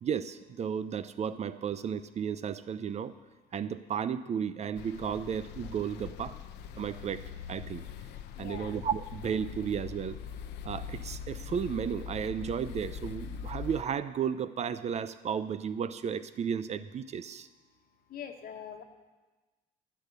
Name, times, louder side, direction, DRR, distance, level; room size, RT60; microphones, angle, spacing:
voice 1, 0.0-3.1 3.5-6.4 6.8-7.2 7.5-7.8 8.4-10.2 10.6-17.5, right 7 dB, 40° right, 13 dB, 0.5 m, -33 dB
sound 1, 4.7-13.8, left 7 dB, 80° left, 0.7 m, -42 dB
voice 2, 8.3-8.7 18.1-18.8, left 8 dB, 60° left, 6 dB, 1.4 m, -43 dB
11.5 x 8.4 x 6.8 m, 1.2 s
cardioid pair, 110°, 17 cm